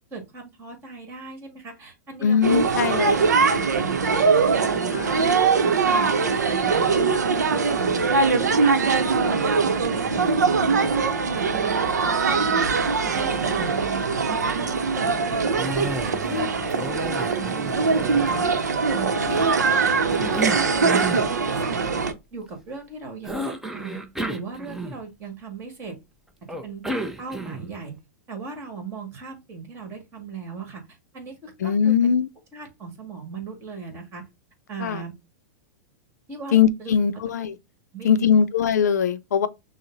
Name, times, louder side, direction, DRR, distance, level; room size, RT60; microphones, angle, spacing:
voice 1, 0.1-2.6 3.0-5.2 5.6-7.2 7.5-8.1 8.4-9.0 9.3-12.7 13.1-14.2 14.6-17.6 17.9-18.6 18.9-20.9 21.2-22.0 22.3-24.0 24.2-26.0 26.6-27.9 28.3-32.1 32.5-34.2 34.7-35.1 36.3-37.0 37.9-38.3, right 4 dB, 30° right, 1.8 m, -38 dB
voice 2, 2.2-3.2 4.9-5.2 31.6-32.3 34.8-35.0 36.5-37.5 38.0-39.5, left 7 dB, 80° left, 0.5 m, -21 dB
sound 1, 2.4-22.1, right 4 dB, 85° right, 0.7 m, -22 dB
Cough, 15.6-16.4 16.7-18.8 19.3-21.3 23.2-25.2 26.5-27.8, right 2 dB, 5° right, 0.6 m, -32 dB
6.2 x 2.1 x 2.6 m
hypercardioid pair, 110°, 9 cm